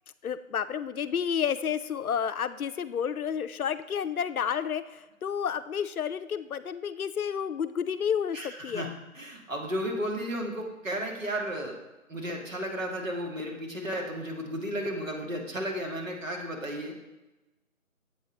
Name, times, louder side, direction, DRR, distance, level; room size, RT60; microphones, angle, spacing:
voice 1, 0.2-8.9, left 8 dB, 80° left, 13 dB, 0.5 m, -30 dB
voice 2, 8.3-8.9 9.1-11.8 12.1-16.9, equal, 65° right, 1 dB, 1.6 m, -33 dB
7.9 x 5.0 x 3.9 m, 1.1 s
figure-of-eight pair, 165°, 43 cm